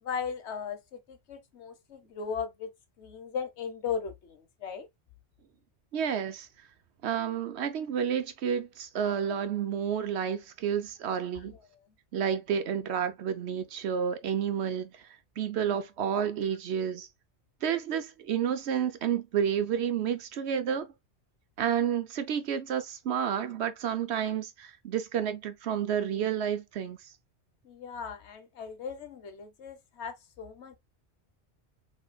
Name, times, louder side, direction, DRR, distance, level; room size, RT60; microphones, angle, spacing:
voice 1, 0.0-2.7 3.0-4.9 11.3-11.6 27.6-30.8, left 6 dB, 75° left, 1.2 m, -37 dB
voice 2, 5.9-6.5 7.0-11.6 12.1-15.0 15.4-17.1 17.6-20.9 21.6-27.0, right 8 dB, 75° right, 1.0 m, -30 dB
5.1 x 3.3 x 2.2 m
omnidirectional pair, 1.1 m